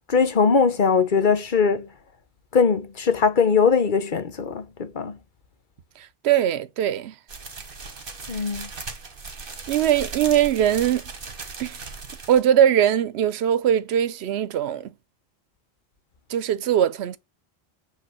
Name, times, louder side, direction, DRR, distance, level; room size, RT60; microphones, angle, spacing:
voice 1, 0.1-1.9 2.5-5.2 8.3-8.7, left 5 dB, 50° left, 1.0 m, -21 dB
voice 2, 6.0-7.2 9.7-11.0 11.6-11.8 12.3-14.9 16.3-17.2, right 10 dB, 85° right, 0.9 m, -21 dB
sound 1, 7.3-12.5, right 4 dB, 60° right, 1.5 m, -37 dB
7.9 x 3.5 x 5.7 m
omnidirectional pair, 1.1 m